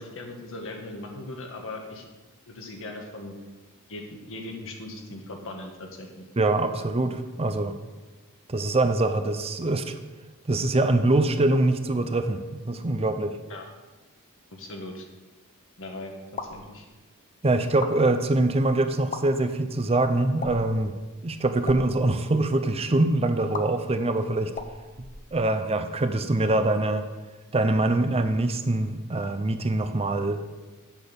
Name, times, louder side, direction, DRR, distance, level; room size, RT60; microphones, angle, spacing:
voice 1, 0.0-2.0 2.5-3.3 3.9-6.2 13.5-13.6 14.5-15.0 15.8-16.1 16.5-16.8, left 2 dB, 60° left, 2 dB, 1.6 m, -39 dB
voice 2, 6.4-7.7 8.5-10.0 10.5-13.3 17.4-20.9 21.2-24.5 25.3-27.0 27.5-30.4, right 2 dB, 25° right, 8 dB, 0.6 m, -24 dB
sound 1, 16.3-16.7 17.6-18.0 19.0-19.2 20.4-20.7 21.5-21.8 23.5-23.6 24.5-25.7, left 4 dB, 35° left, 0.7 m, -36 dB
8.1 x 6.1 x 6.9 m, 1.2 s
head